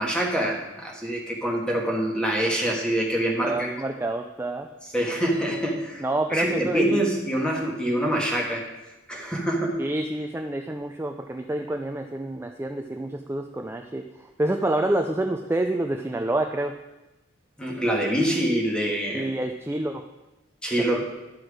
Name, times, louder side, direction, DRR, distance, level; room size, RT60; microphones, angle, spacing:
voice 1, 0.0-3.7 4.9-6.0 6.3-8.6 9.1-9.8 17.6-19.3 20.6-21.0, right 1 dB, 5° left, -1 dB, 1.7 m, -25 dB
voice 2, 3.4-4.7 6.0-7.0 9.8-14.0 14.4-16.7 19.1-20.1 20.8-21.0, right 1 dB, 15° right, 4 dB, 0.4 m, -28 dB
11.0 x 6.2 x 5.0 m, 1.0 s
head